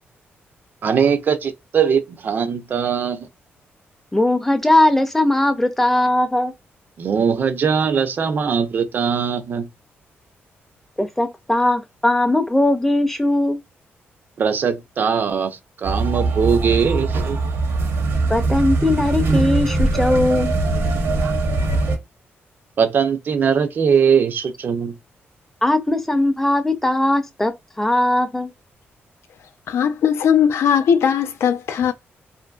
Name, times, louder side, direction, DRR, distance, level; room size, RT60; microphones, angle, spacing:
voice 1, 0.8-3.3 7.0-9.7 14.4-17.4 22.8-25.0, right 6 dB, 50° right, 0.4 m, -20 dB
voice 2, 4.1-6.5 11.0-13.6 18.3-20.5 25.6-27.5 27.8-28.5, left 1 dB, 5° left, 0.5 m, -19 dB
sound 1, 15.8-22.0, right 3 dB, 75° right, 0.8 m, -21 dB
voice 3, 29.7-31.9, left 8 dB, 75° left, 0.3 m, -18 dB
2.6 x 2.5 x 2.3 m
cardioid pair, 125°, 4 cm